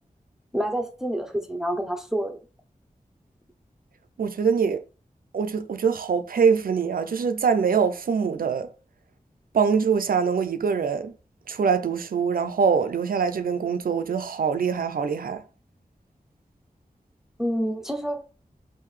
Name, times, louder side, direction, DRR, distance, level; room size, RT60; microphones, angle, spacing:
voice 1, 0.5-2.4 17.4-18.3, equal, 5° right, 0.6 m, -28 dB
voice 2, 4.2-4.8 5.3-8.7 9.5-11.1 11.5-15.4, right 6 dB, 80° right, 0.4 m, -23 dB
3.6 x 2.6 x 3.1 m
wide cardioid pair, 55°, 15 cm